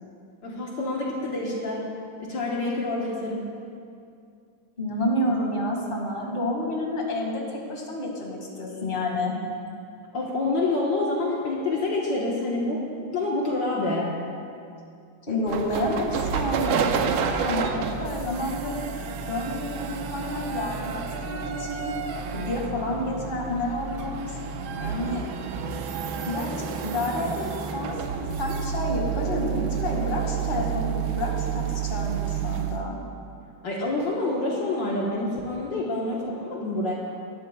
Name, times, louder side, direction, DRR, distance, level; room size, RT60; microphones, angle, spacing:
voice 1, 0.4-1.9 2.2-3.5 10.1-12.9 13.1-14.2 33.6-36.9, left 2 dB, 65° left, -4 dB, 1.9 m, -27 dB
voice 2, 4.8-9.4 15.3-18.8 19.3-21.9 22.3-24.4 24.8-25.3 26.3-33.0, left 1 dB, 25° left, -1 dB, 2.1 m, -29 dB
sound 1, 15.5-32.8, right 7 dB, 80° right, 1.5 m, -30 dB
19.5 x 12.5 x 2.3 m, 2.5 s
omnidirectional pair, 2.2 m